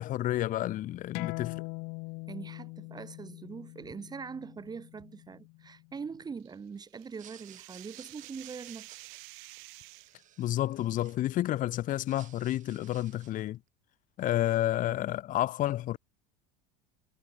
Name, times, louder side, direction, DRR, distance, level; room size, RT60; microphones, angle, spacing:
voice 1, 0.0-1.6 10.4-13.6 14.2-16.0, left 14 dB, 40° left, 1.2 m, -30 dB
sound 1, 1.1-6.3, left 30 dB, 60° left, 1.1 m, -42 dB
voice 2, 2.3-9.0, right 5 dB, 20° right, 1.8 m, -42 dB
sound 2, 6.4-10.2, right 40 dB or more, 65° right, 1.4 m, -50 dB
sound 3, 7.0-11.5 11.9-13.5, right 11 dB, 40° right, 4.0 m, -56 dB
supercardioid pair, 115°, 20 cm